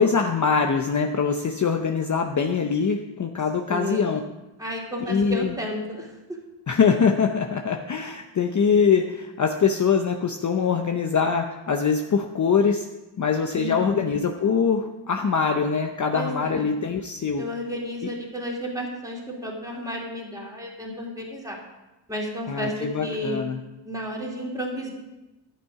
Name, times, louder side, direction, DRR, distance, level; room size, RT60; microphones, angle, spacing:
voice 1, 0.0-4.2 5.1-5.5 6.7-12.9 13.2-17.4 22.5-23.6, left 6 dB, 40° left, 4 dB, 0.7 m, -23 dB
voice 2, 3.7-4.2 4.6-6.1 13.5-14.1 16.1-16.7 17.4-21.6 22.1-23.4 23.8-24.9, equal, 10° right, -3 dB, 2.8 m, -32 dB
11.5 x 9.3 x 4.8 m, 1.0 s
wide cardioid pair, 120°, 46 cm